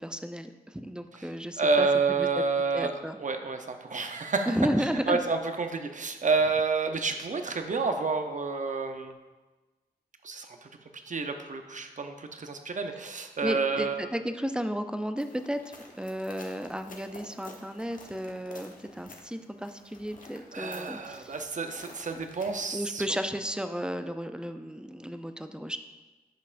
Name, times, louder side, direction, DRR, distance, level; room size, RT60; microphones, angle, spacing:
voice 1, 0.0-1.9 2.2-2.4 2.7-3.2 4.5-5.2 13.4-21.3 22.7-25.8, equal, 5° right, 8 dB, 0.5 m, -33 dB
voice 2, 1.6-2.9 3.2-4.6 5.1-9.1 10.2-10.7 11.1-14.1 20.5-23.0, right 4 dB, 50° right, 6 dB, 0.8 m, -29 dB
sound 1, 15.2-22.8, left 2 dB, 55° left, 1.1 m, -51 dB
10.0 x 5.4 x 2.6 m, 1.2 s
cardioid pair, 50°, 16 cm